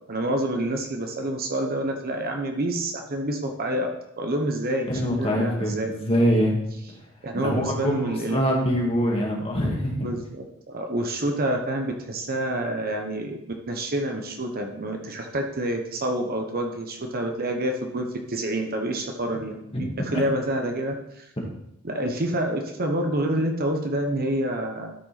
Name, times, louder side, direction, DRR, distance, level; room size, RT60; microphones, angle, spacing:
voice 1, 0.1-3.9 4.2-4.9 5.2-5.9 7.2-8.4 10.0-21.3 21.8-24.9, right 1 dB, 45° right, 3 dB, 1.0 m, -28 dB
voice 2, 5.0-6.6 7.3-9.9 19.7-19.8 20.1-20.2, equal, 25° left, -1 dB, 2.0 m, -24 dB
12.5 x 5.4 x 4.2 m, 0.83 s
head